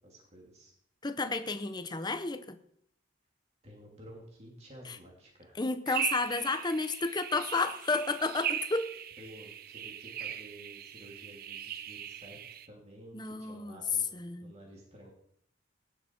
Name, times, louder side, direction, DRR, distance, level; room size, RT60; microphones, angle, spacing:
voice 1, 0.0-0.7 3.6-5.6 9.2-12.4 12.7-14.1 14.4-15.1, right 1 dB, 35° right, -1 dB, 2.7 m, -52 dB
voice 2, 1.0-2.6 4.8-5.0 5.5-8.9 13.1-13.8 14.1-14.5, left 3 dB, 25° left, 11 dB, 0.8 m, -32 dB
sound 1, 5.9-12.7, right 10 dB, 50° right, 0.6 m, -39 dB
17.5 x 7.0 x 4.5 m, 0.70 s
head